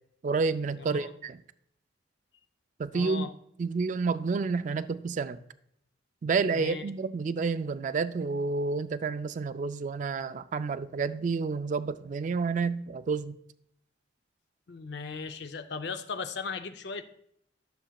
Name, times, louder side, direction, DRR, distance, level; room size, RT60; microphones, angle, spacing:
voice 1, 0.2-1.4 2.8-3.3 3.6-5.4 6.2-13.4, right 4 dB, 45° right, 0.3 m, -29 dB
voice 2, 0.8-1.1 2.9-3.3 6.5-6.8 14.7-17.0, left 5 dB, 65° left, 0.5 m, -37 dB
12.5 x 6.9 x 2.3 m
head